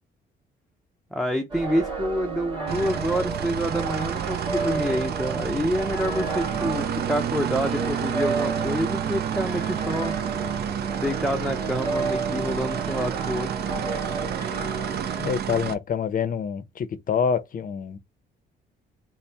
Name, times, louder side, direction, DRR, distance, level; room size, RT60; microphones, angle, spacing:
voice 1, 1.1-10.2 11.0-13.5, equal, ahead, 0.6 m, -27 dB
sound 1, 1.5-15.3, right 3 dB, 25° right, 1.7 m, -32 dB
sound 2, 2.7-15.7, right 9 dB, 55° right, 0.5 m, -30 dB
voice 2, 15.2-18.0, left 7 dB, 45° left, 0.6 m, -26 dB
4.1 x 2.1 x 3.3 m
cardioid pair, 90°, 20 cm